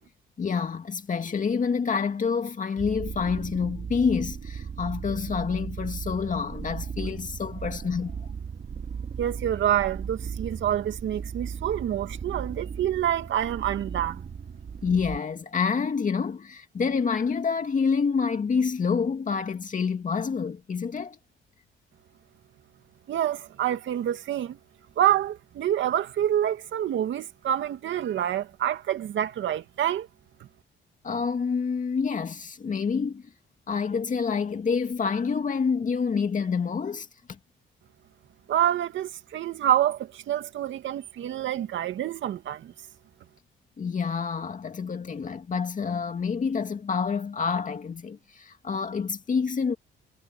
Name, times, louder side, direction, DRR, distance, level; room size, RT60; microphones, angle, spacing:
voice 1, 0.4-8.3 14.8-21.2 31.0-33.3 33.7-37.4 43.8-49.8, left 5 dB, 40° left, 2.3 m, -27 dB
sound 1, 2.8-15.2, right 6 dB, 45° right, 4.6 m, -36 dB
voice 2, 9.2-14.3 23.1-24.6 25.0-30.1 38.5-42.7, right 11 dB, 70° right, 2.2 m, -27 dB
cardioid pair, 90°, 20 cm